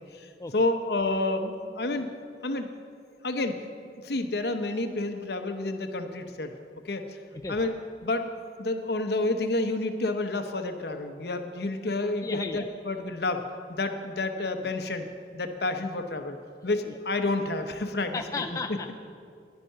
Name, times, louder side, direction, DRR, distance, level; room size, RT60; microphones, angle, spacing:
voice 1, 0.0-2.1 2.4-2.7 3.2-3.6 4.0-6.5 6.8-7.2 7.5-7.7 8.0-8.3 8.6-13.4 13.7-15.1 15.3-16.4 16.6-18.2, left 2 dB, 65° left, 7 dB, 0.8 m, -29 dB
voice 2, 12.2-12.7 14.6-14.7 16.9-17.0 18.1-18.9, left 3 dB, 20° left, 5 dB, 0.3 m, -34 dB
10.5 x 10.0 x 5.6 m, 2.3 s
head